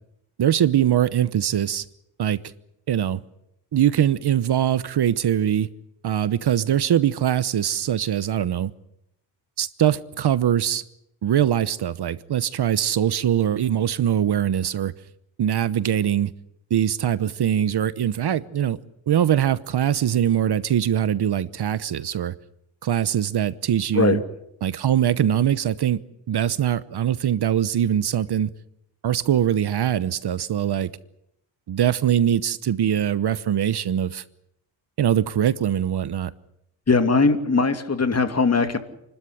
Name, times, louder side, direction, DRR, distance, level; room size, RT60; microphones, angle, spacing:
voice 1, 0.4-1.8 2.2-2.4 2.9-3.2 3.7-5.7 6.0-8.7 9.6-10.8 11.2-14.9 15.4-16.3 16.7-18.8 19.1-22.3 22.8-24.2 24.6-28.5 29.0-30.9 31.7-34.2 35.0-36.3, right 10 dB, 55° right, 1.0 m, -22 dB
voice 2, 36.9-38.8, left 4 dB, 30° left, 2.6 m, -20 dB
29.5 x 13.0 x 10.0 m
cardioid pair, 85°, 47 cm